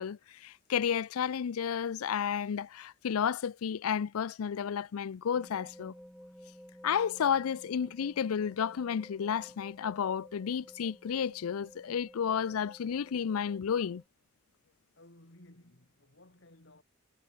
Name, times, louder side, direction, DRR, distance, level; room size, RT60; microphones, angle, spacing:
voice 1, 0.0-5.9 6.8-14.0, left 7 dB, 90° left, 0.4 m, -32 dB
sound 1, 5.3-14.1, equal, ahead, 1.7 m, -54 dB
voice 2, 14.9-16.8, left 1 dB, 60° left, 3.3 m, -57 dB
head